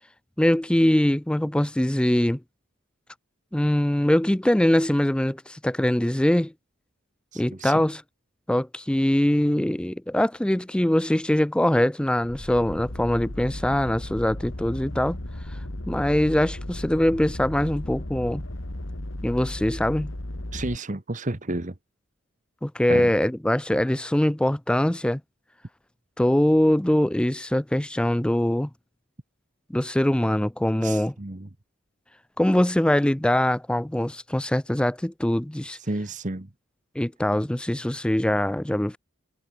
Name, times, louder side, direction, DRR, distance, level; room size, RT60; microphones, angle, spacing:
voice 1, 0.4-2.4 3.5-6.5 7.4-8.0 8.5-15.2 15.9-18.4 19.2-20.1 22.6-25.2 26.2-28.7 29.7-31.1 32.4-35.8 37.0-39.0, left 1 dB, 5° left, 0.3 m, -22 dB
voice 2, 7.3-7.8 20.5-21.7 22.9-23.1 30.8-31.5 35.8-36.5, right 2 dB, 35° right, 1.2 m, -31 dB
sound 1, 12.2-20.8, left 1 dB, 65° left, 2.4 m, -35 dB
head